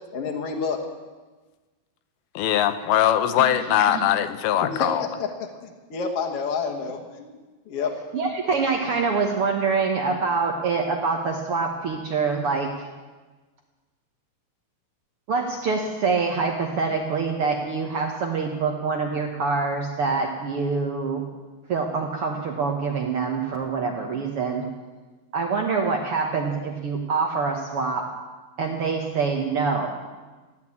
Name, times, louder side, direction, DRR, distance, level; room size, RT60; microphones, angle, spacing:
voice 1, 0.1-0.8 4.6-5.3 5.6-7.4 7.7-7.9, left 5 dB, 55° left, 1 dB, 1.7 m, -29 dB
voice 2, 2.4-5.0, left 11 dB, 85° left, 10 dB, 2.7 m, -21 dB
voice 3, 8.1-12.9 15.3-21.2 21.7-24.6 25.3-28.0 28.6-29.9, right 4 dB, 85° right, 2 dB, 1.2 m, -25 dB
15.5 x 11.0 x 8.5 m, 1.3 s
omnidirectional pair, 4.4 m